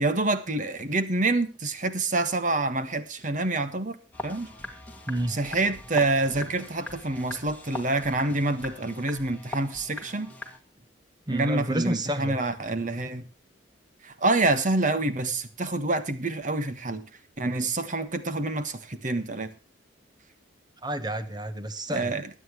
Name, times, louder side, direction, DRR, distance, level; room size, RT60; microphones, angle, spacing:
voice 1, 0.0-4.0 4.2-4.5 5.3-10.3 11.3-13.2 14.0-17.0 17.4-19.5 21.9-22.3, right 2 dB, 45° right, 1.5 m, -27 dB
sound 1, 4.1-10.6, left 2 dB, 10° left, 2.3 m, -41 dB
voice 2, 5.1-5.4 11.3-12.4 20.8-22.1, right 1 dB, 20° right, 1.3 m, -30 dB
22.5 x 9.1 x 3.1 m
head